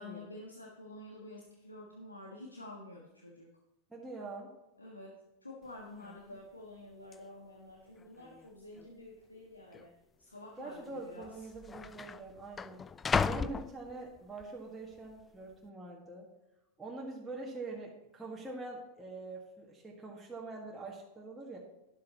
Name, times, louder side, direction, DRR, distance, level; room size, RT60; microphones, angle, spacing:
voice 1, 0.0-3.5 4.8-9.9 10.2-11.5, left 2 dB, 80° left, -1 dB, 1.6 m, -49 dB
voice 2, 3.9-4.5 10.6-12.8 13.2-16.3 16.8-21.6, right 3 dB, 10° right, -4 dB, 1.8 m, -44 dB
sound 1, 5.7-5.8 6.0-6.4 7.1-7.2 8.0-8.5 8.7-8.9 9.7-9.9 10.9-11.0 11.2-14.4 14.9-15.3, left 5 dB, 15° left, 0.3 m, -36 dB
12.5 x 11.5 x 3.0 m, 0.95 s
figure-of-eight pair, 90°, 0 cm